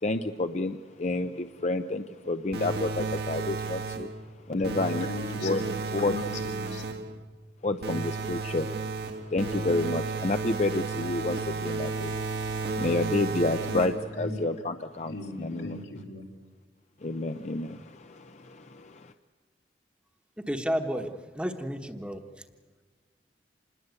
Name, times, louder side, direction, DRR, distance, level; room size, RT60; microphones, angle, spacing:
voice 1, 0.0-4.1 4.5-5.1 5.4-5.6 5.9-6.2 7.6-15.8 17.0-19.1, left 2 dB, 40° left, 8 dB, 0.7 m, -30 dB
sound 1, 2.5-4.2 4.6-7.1 7.8-14.2, right 4 dB, 60° right, 1.5 m, -33 dB
voice 2, 4.5-7.0 13.3-13.8 14.1-14.3 15.1-16.3, left 2 dB, 85° left, 2 dB, 4.3 m, -39 dB
voice 3, 20.5-22.2, equal, 5° right, 5 dB, 1.2 m, -31 dB
27.0 x 20.5 x 8.2 m, 1.5 s
head